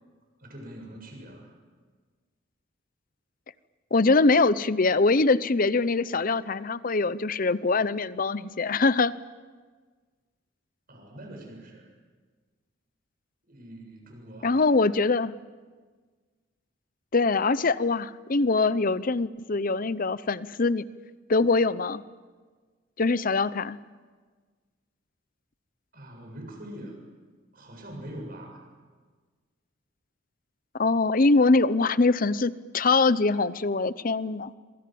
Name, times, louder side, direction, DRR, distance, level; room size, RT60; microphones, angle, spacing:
voice 1, 0.4-1.6 10.9-11.9 13.4-15.2 25.9-27.0 27.5-28.6, right 1 dB, 45° right, 2 dB, 7.4 m, -43 dB
voice 2, 3.9-9.1 14.4-15.3 17.1-20.8 21.3-22.0 23.0-23.8 30.7-34.5, left 3 dB, 45° left, 16 dB, 0.7 m, -23 dB
26.5 x 24.0 x 7.7 m, 1.5 s
head